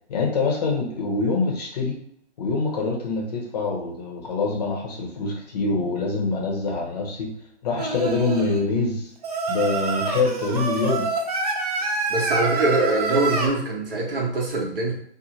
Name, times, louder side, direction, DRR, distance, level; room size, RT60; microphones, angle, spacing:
voice 1, 0.1-2.0 2.4-7.3 7.6-9.1 9.5-11.1, left 3 dB, 35° left, -1 dB, 0.7 m, -25 dB
Singing, 7.8-8.6 9.2-13.5, right 4 dB, 35° right, 0.4 m, -26 dB
voice 2, 12.1-14.9, right 2 dB, 55° right, -2 dB, 1.0 m, -23 dB
2.7 x 2.1 x 3.0 m, 0.68 s
figure-of-eight pair, 140°, 34 cm